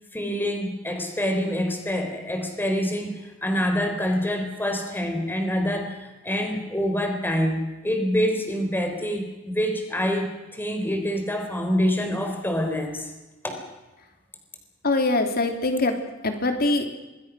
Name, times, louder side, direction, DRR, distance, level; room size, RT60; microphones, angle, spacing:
voice 1, 0.1-13.1 13.4-13.6, equal, 10° left, 4 dB, 4.0 m, -26 dB
voice 2, 14.8-16.0 16.2-16.9, left 2 dB, 50° left, 5 dB, 3.1 m, -23 dB
27.0 x 20.5 x 6.3 m, 1.1 s
head